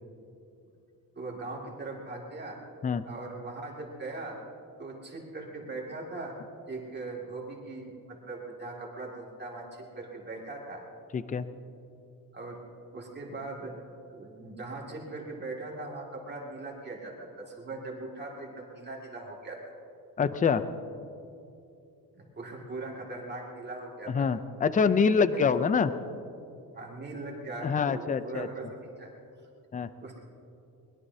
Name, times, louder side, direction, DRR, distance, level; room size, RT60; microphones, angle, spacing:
voice 1, 1.2-2.6 3.0-4.4 4.8-6.4 6.7-10.8 12.3-12.6 12.9-13.8 14.1-19.7 22.1-24.3 25.3-25.4 26.7-29.1 30.0-30.2, right 2 dB, 30° right, -2 dB, 2.3 m, -40 dB
voice 2, 11.1-11.5 20.2-20.6 24.1-25.9 27.6-28.5 29.7-29.9, left 5 dB, 25° left, 12 dB, 0.5 m, -25 dB
23.0 x 20.5 x 2.8 m, 2.7 s
wide cardioid pair, 165°, 35 cm